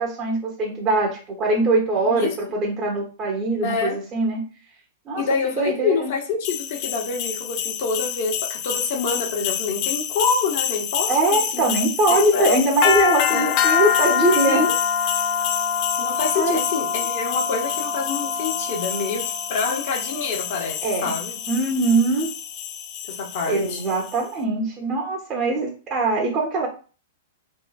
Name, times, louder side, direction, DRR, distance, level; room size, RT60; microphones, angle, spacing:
voice 1, 0.0-4.4 5.1-6.1 11.1-14.7 16.3-16.6 20.8-21.1 21.5-22.3 23.5-26.7, right 2 dB, 30° right, -2 dB, 0.8 m, -22 dB
voice 2, 3.6-4.0 5.1-11.6 12.1-12.6 13.3-13.5 14.5-14.7 16.0-19.2 19.5-21.3 23.1-23.8, left 4 dB, 55° left, 0 dB, 1.1 m, -26 dB
sound 1, 6.4-24.2, left 8 dB, 40° left, 0.4 m, -26 dB
2.9 x 2.5 x 2.3 m, 0.36 s
hypercardioid pair, 130°, 0 cm